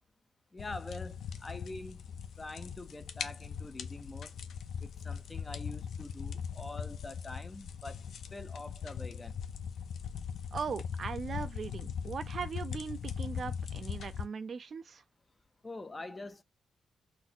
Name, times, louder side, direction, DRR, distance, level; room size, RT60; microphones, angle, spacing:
voice 1, 0.5-2.0 2.4-4.3 4.8-8.0 8.3-9.4 15.6-16.4, left 2 dB, 20° left, 0.5 m, -45 dB
sound 1, 0.6-14.3, left 7 dB, 70° left, 0.5 m, -40 dB
voice 2, 10.5-15.0, right 5 dB, 45° right, 0.5 m, -39 dB
4.0 x 2.0 x 4.3 m
wide cardioid pair, 135°, 0 cm